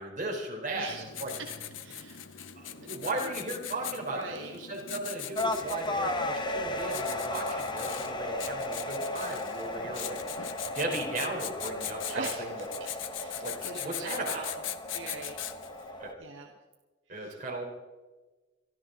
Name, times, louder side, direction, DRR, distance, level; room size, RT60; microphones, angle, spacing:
voice 1, 0.0-0.9 1.2-1.3 2.6-10.2 10.7-12.3 12.6-12.7 13.4-14.5 16.0-16.1 17.1-17.6, right 2 dB, 45° right, -1 dB, 3.7 m, -36 dB
voice 2, 0.7-1.5 1.8-2.4 3.2-3.3 4.1-4.5 7.7-7.9 12.1-12.4 12.8-14.4 14.9-15.4 15.8-16.5 17.1-17.4, right 4 dB, 75° right, 1 dB, 1.5 m, -43 dB
Writing, 0.9-15.8, left 10 dB, 80° left, 0.8 m, -41 dB
sound 1, 5.3-16.1, left 1 dB, 25° left, 1.0 m, -35 dB
24.5 x 12.5 x 3.8 m, 1.2 s
head